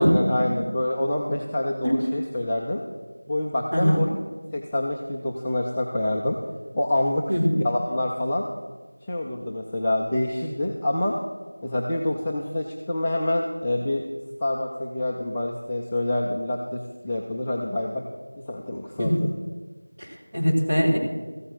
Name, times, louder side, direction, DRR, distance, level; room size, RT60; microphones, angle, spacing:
voice 1, 0.0-2.8 3.3-4.1 4.5-6.4 6.7-7.3 7.5-8.5 9.1-11.1 11.6-14.1 14.4-18.0 18.5-19.3, left 1 dB, 5° left, -6 dB, 0.3 m, -26 dB
voice 2, 3.7-4.0 7.3-7.6 19.0-19.2 20.0-21.0, equal, 20° right, -6 dB, 2.6 m, -22 dB
14.5 x 8.5 x 7.6 m, 1.3 s
figure-of-eight pair, 180°, 0 cm